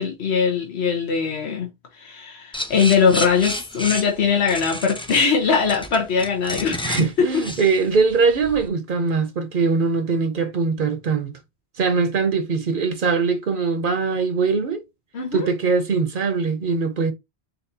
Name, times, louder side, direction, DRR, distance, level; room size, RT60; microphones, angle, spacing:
voice 1, 0.0-1.7 2.0-6.9 7.2-7.3 15.1-15.5, left 6 dB, 85° left, 1.3 m, -21 dB
sound 1, 2.5-8.7, left 1 dB, 10° left, 0.3 m, -31 dB
voice 2, 6.8-11.3 11.8-14.8 15.3-17.1, right 4 dB, 55° right, 0.8 m, -21 dB
4.2 x 4.0 x 2.7 m
omnidirectional pair, 1.1 m